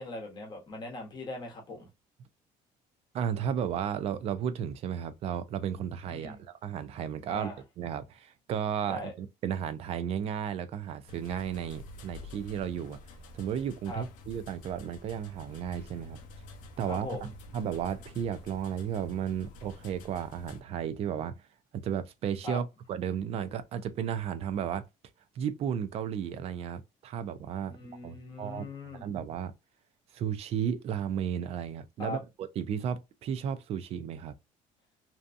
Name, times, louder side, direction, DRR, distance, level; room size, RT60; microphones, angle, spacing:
voice 1, 0.0-1.9 6.1-6.4 7.3-7.6 8.9-9.1 13.9-14.0 16.9-17.3 22.4-22.6 27.7-29.1 32.0-32.2, left 1 dB, 30° left, 1.0 m, -40 dB
voice 2, 3.1-7.5 7.8-13.0 13.3-16.2 16.8-21.4 21.7-24.8 25.4-27.8 28.0-28.7 29.0-29.5 30.1-34.3, right 8 dB, 45° right, 0.4 m, -34 dB
sound 1, 11.1-20.6, left 2 dB, 65° left, 0.5 m, -49 dB
2.6 x 2.2 x 2.5 m
cardioid pair, 145°, 14 cm